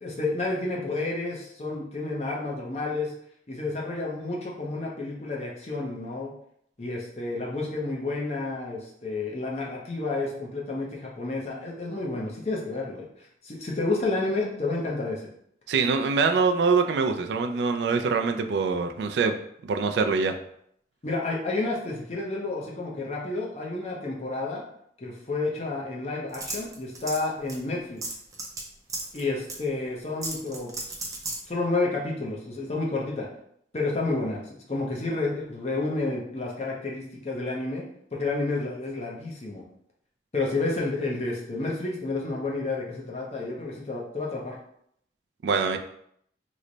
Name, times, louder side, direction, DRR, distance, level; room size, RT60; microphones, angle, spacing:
voice 1, 0.0-3.1 3.5-6.3 6.8-15.3 21.0-24.6 25.0-28.0 29.1-30.7 31.5-33.3 33.7-37.8 38.1-39.6 40.3-44.6, left 2 dB, 40° left, -2 dB, 0.6 m, -30 dB
voice 2, 15.7-19.4 19.6-20.4 45.4-45.8, right 4 dB, 80° right, 6 dB, 0.3 m, -24 dB
sound 1, 26.3-27.2 27.5-27.6 28.0-28.6 28.9-29.2 29.5-29.6 30.2-31.4, right 3 dB, 20° right, 0.5 m, -34 dB
3.1 x 2.1 x 3.8 m, 0.70 s
head